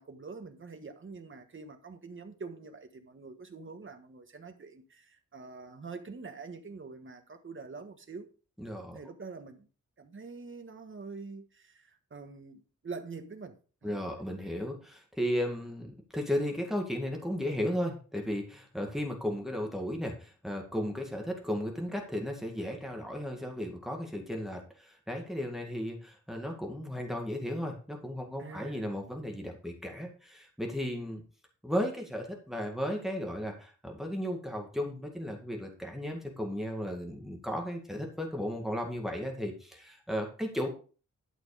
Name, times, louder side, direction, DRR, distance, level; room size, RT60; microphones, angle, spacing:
voice 1, 0.0-8.3 8.9-9.7 10.0-14.0 28.4-28.8, right 4 dB, 40° right, 1.4 m, -45 dB
voice 2, 8.6-9.0 13.8-31.2 31.6-40.7, equal, ahead, 2.0 m, -35 dB
12.0 x 6.1 x 4.9 m
wide cardioid pair, 175°, 31 cm